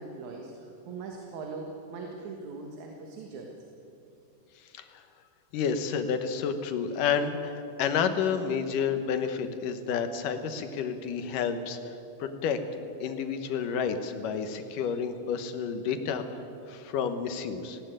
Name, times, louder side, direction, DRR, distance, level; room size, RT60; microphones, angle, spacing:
voice 1, 0.0-3.5, right 4 dB, 60° right, 1 dB, 2.8 m, -40 dB
voice 2, 5.5-11.9 12.2-12.6 13.0-16.4 16.7-17.8, left 6 dB, 75° left, 8 dB, 2.7 m, -30 dB
18.5 x 16.5 x 9.0 m, 2.7 s
omnidirectional pair, 3.9 m